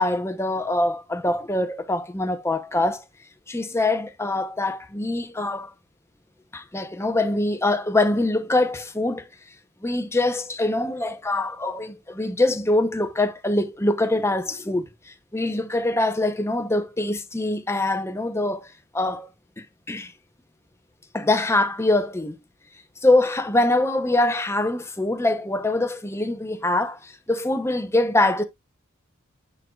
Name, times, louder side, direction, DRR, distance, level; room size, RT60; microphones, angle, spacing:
voice 1, 0.0-3.0 3.5-5.7 6.5-9.3 9.8-19.3 19.6-20.1 21.1-22.4 23.0-28.4, left 2 dB, 10° left, 0.8 m, -24 dB
8.6 x 4.6 x 2.4 m
head